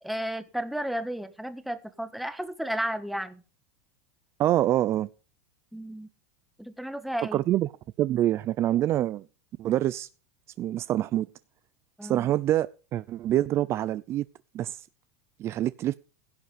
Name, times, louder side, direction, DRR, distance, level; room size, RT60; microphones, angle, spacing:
voice 1, 0.0-3.4 5.7-6.1 6.6-7.4 12.0-12.3, right 1 dB, ahead, 1.5 m, -33 dB
voice 2, 4.4-5.1 7.3-7.7 8.0-9.2 9.6-10.1 10.6-11.3 12.0-14.2 14.5-14.8 15.4-15.9, right 13 dB, 35° right, 0.5 m, -26 dB
16.5 x 7.8 x 5.1 m
supercardioid pair, 135°, 8 cm